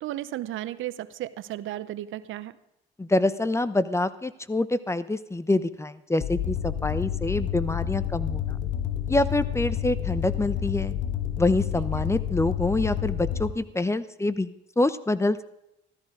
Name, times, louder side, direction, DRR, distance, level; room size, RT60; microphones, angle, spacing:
voice 1, 0.0-2.6, right 14 dB, 80° right, 15 dB, 0.8 m, -34 dB
voice 2, 3.0-8.6 9.1-10.9 11.4-14.5 14.8-15.4, left 2 dB, 15° left, 15 dB, 0.7 m, -26 dB
sound 1, 6.2-13.5, left 10 dB, 70° left, 1.3 m, -29 dB
14.0 x 13.5 x 5.0 m, 0.84 s
cardioid pair, 90°, 20 cm